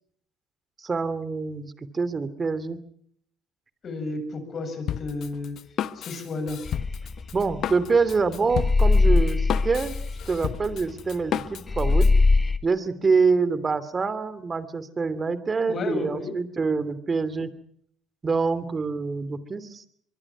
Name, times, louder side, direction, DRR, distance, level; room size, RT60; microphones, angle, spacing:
voice 1, 0.8-2.8 7.3-10.0 10.3-12.1 12.6-17.5 18.2-19.8, right 4 dB, 30° right, 15 dB, 2.8 m, -26 dB
voice 2, 3.8-5.6 5.9-6.6 15.7-16.3, left 3 dB, 45° left, 9 dB, 7.4 m, -32 dB
Drum kit, 4.9-12.2, left 10 dB, 60° left, 1.1 m, -33 dB
sound 1, 6.7-8.1 8.5-11.4 11.7-12.6, left 3 dB, 25° left, 1.7 m, -21 dB
23.5 x 23.5 x 6.2 m, 0.66 s
supercardioid pair, 90°, 0 cm